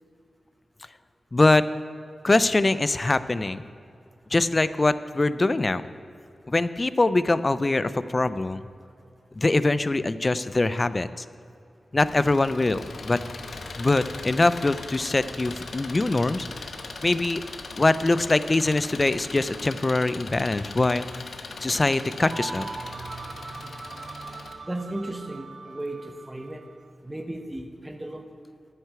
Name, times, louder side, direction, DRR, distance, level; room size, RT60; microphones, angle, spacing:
voice 1, 1.3-1.6 2.2-3.6 4.3-5.8 6.5-8.6 9.3-11.2 11.9-13.2 13.8-16.5 17.0-17.4 17.8-21.2 21.6-22.7, left 2 dB, 30° left, 14 dB, 0.4 m, -23 dB
Engine, 12.0-24.5, left 3 dB, 75° left, 0.9 m, -39 dB
sound 1, 22.2-26.8, right 3 dB, 55° right, 0.6 m, -40 dB
voice 2, 24.6-26.6 27.0-28.4, right 1 dB, 15° right, 5 dB, 0.9 m, -35 dB
9.4 x 6.5 x 8.7 m, 2.5 s
wide cardioid pair, 80°, 0 cm